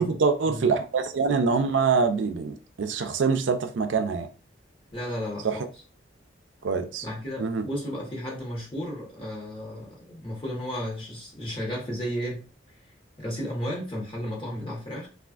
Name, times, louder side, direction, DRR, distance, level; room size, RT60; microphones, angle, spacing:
voice 1, 0.0-4.3 5.4-5.6 6.6-7.0 7.4-7.6, right 5 dB, 75° right, 7 dB, 0.4 m, -25 dB
voice 2, 4.9-5.6 7.0-12.4 13.2-15.1, equal, 25° left, -3 dB, 1.1 m, -33 dB
3.4 x 2.4 x 2.4 m, 0.35 s
head